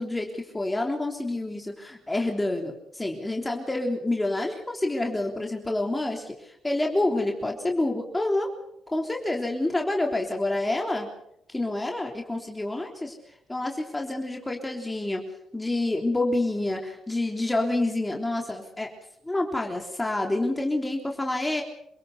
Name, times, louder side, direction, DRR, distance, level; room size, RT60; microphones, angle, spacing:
voice 1, 0.0-8.5 8.9-11.1 11.5-13.1 13.5-15.2 15.5-18.9 19.2-21.6, left 2 dB, 15° left, 2 dB, 3.5 m, -28 dB
27.5 x 17.5 x 6.8 m, 0.73 s
cardioid pair, 90°, 0 cm